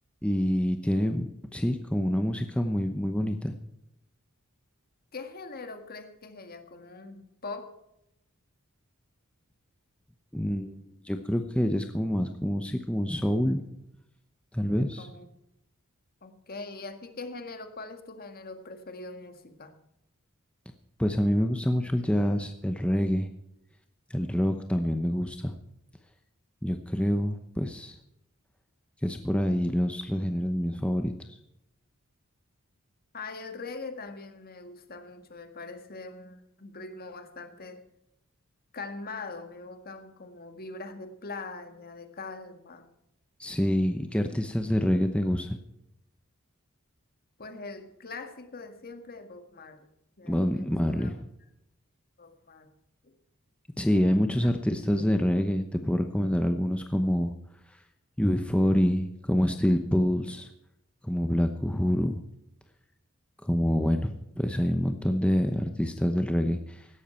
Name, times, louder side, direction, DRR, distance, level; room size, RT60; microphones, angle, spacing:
voice 1, 0.2-3.5 10.3-13.6 14.5-15.1 21.0-23.3 24.1-25.5 26.6-28.0 29.0-31.1 43.4-45.6 50.2-51.3 53.8-57.3 57.7-57.8 58.2-60.5 61.0-62.2 63.4-66.9, equal, 5° left, 6 dB, 0.8 m, -26 dB
voice 2, 5.1-7.7 15.0-15.2 16.2-19.7 33.1-37.8 38.7-42.9 47.4-49.9 50.2-51.1 52.2-52.7 53.0-53.1 54.3-54.5, left 3 dB, 45° left, 7 dB, 1.8 m, -42 dB
16.5 x 13.0 x 4.5 m, 0.83 s
head